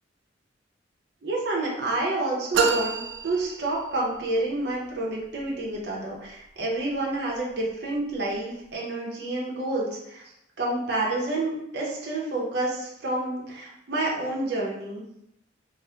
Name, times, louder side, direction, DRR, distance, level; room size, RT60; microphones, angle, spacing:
voice 1, 1.2-10.2 10.6-15.0, right 2 dB, 60° right, -4 dB, 0.7 m, -29 dB
sound 1, 2.5-4.2, right 5 dB, 80° right, 0.3 m, -27 dB
2.8 x 2.1 x 3.3 m, 0.81 s
head